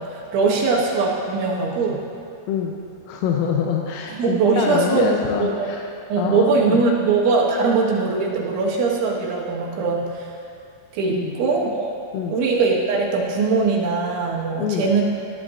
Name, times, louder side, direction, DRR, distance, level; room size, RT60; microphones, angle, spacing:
voice 1, 0.0-2.0 4.1-5.7 6.1-10.3 10.9-11.9 12.3-15.0, right 4 dB, 75° right, -3 dB, 3.7 m, -21 dB
voice 2, 3.1-5.8 6.2-6.8 11.1-11.4 12.1-12.4 14.6-14.9, left 7 dB, 90° left, 0 dB, 3.4 m, -25 dB
19.5 x 11.5 x 2.5 m, 2.5 s
omnidirectional pair, 5.8 m